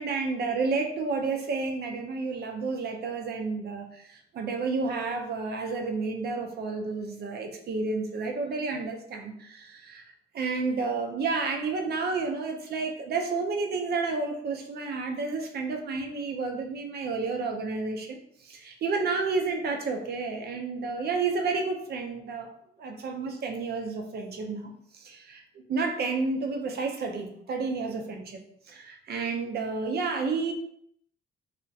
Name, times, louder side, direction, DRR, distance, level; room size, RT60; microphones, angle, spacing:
voice 1, 0.0-10.1 10.3-22.5 22.8-25.4 25.7-28.4 28.7-30.5, right 4 dB, 55° right, 4 dB, 0.5 m, -31 dB
2.6 x 2.1 x 2.3 m, 0.71 s
cardioid pair, 90°, 20 cm